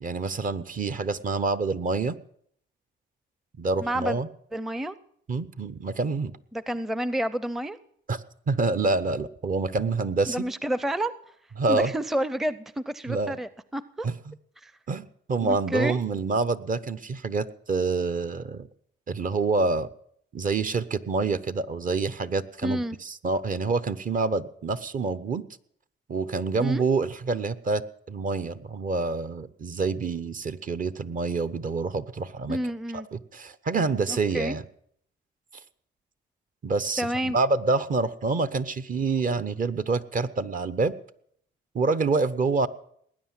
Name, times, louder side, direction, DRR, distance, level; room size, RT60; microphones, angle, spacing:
voice 1, 0.0-2.2 3.6-4.3 5.3-6.3 8.1-10.4 11.6-11.9 13.1-13.4 14.0-14.3 14.9-18.7 19.1-19.9 20.3-25.4 26.1-32.6 32.9-34.6 36.6-40.9 41.7-42.7, right 3 dB, 45° right, 14 dB, 0.9 m, -27 dB
voice 2, 3.8-4.2 4.5-5.0 6.5-7.8 10.3-11.1 11.7-14.1 14.6-14.7 15.4-16.0 22.6-23.0 26.6-26.8 32.5-33.1 34.1-34.6 37.0-37.4, right 1 dB, ahead, 16 dB, 0.6 m, -29 dB
19.0 x 9.7 x 7.4 m, 0.66 s
cardioid pair, 90°, 20 cm